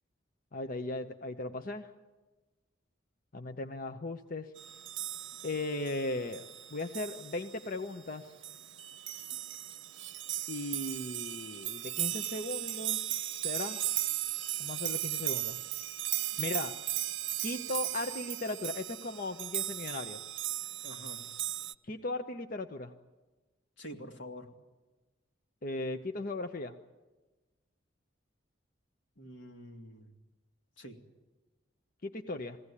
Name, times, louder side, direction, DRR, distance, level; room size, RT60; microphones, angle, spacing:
voice 1, 0.5-1.9 3.3-4.5 5.4-6.4 6.7-8.3 10.5-13.8 14.6-15.6 16.4-16.7 17.4-20.2 21.8-22.9 25.6-26.7 32.0-32.6, left 2 dB, 50° left, 6 dB, 0.8 m, -37 dB
sound 1, 4.6-21.7, right 14 dB, 80° right, 0.6 m, -37 dB
voice 2, 20.8-21.3 23.8-24.5 29.2-30.1 30.8-31.0, equal, 85° left, 3 dB, 2.3 m, -47 dB
21.5 x 16.5 x 9.8 m, 1.2 s
head